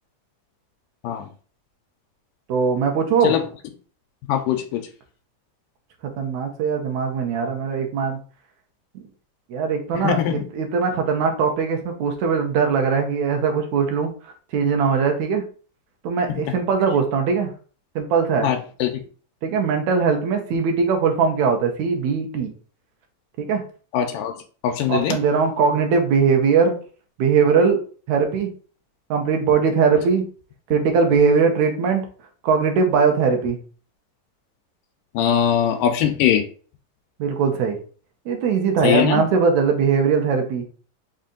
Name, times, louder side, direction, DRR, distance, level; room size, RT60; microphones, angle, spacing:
voice 1, 2.5-3.4 6.0-8.2 9.5-14.1 14.5-15.4 16.0-17.5 18.0-18.5 19.4-22.5 23.4-23.6 24.9-26.8 27.2-27.8 28.1-28.5 29.1-30.3 30.7-32.1 32.4-33.6 37.2-37.8 38.3-40.6, right 5 dB, 70° right, 3 dB, 1.9 m, -20 dB
voice 2, 4.3-4.8 9.9-10.4 16.3-16.5 18.4-19.0 23.9-24.3 24.6-25.2 35.1-36.4 38.8-39.2, left 9 dB, 85° left, 5 dB, 2.2 m, -21 dB
5.5 x 2.4 x 3.7 m, 0.40 s
omnidirectional pair, 3.8 m